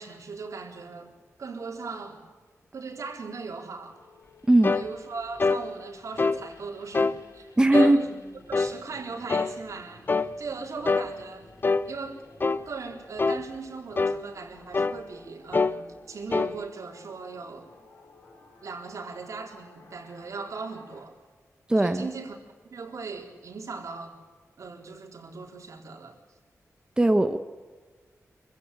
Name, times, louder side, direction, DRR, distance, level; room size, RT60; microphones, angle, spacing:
voice 1, 0.0-2.3 2.7-4.0 4.7-8.2 8.5-10.1 10.4-11.5 11.9-12.2 12.5-17.7 18.6-21.2 21.8-22.4 22.7-24.1 24.6-26.2, right 4 dB, 70° right, 2 dB, 4.0 m, -39 dB
sound 1, 3.9-21.1, left 2 dB, 75° left, 5.5 m, -55 dB
voice 2, 4.5-4.8 7.6-8.1 21.7-22.1 27.0-27.4, right 1 dB, 15° right, 7 dB, 1.0 m, -19 dB
sound 2, 4.6-4.9 5.4-5.6 6.2-6.4 6.9-7.2 7.7-8.0 8.5-8.8 9.3-9.5 10.1-10.3 10.9-11.1 11.6-11.9 12.4-12.6 13.2-13.4 14.0-14.2 14.7-15.0 15.5-15.8 16.3-16.5, left 4 dB, 35° left, 0.7 m, -24 dB
25.0 x 15.5 x 8.4 m, 1.4 s
wide cardioid pair, 130°, 6 cm